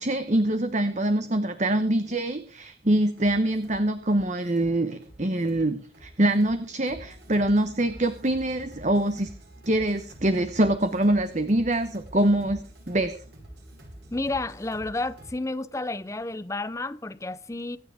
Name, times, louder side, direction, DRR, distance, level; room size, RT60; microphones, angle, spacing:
voice 1, 0.0-9.3 9.7-13.1, right 1 dB, 40° right, 1.0 m, -24 dB
sound 1, 2.8-15.3, right 1 dB, 60° right, 6.5 m, -48 dB
voice 2, 14.1-17.8, left 2 dB, 15° left, 0.5 m, -31 dB
24.5 x 9.6 x 3.5 m
head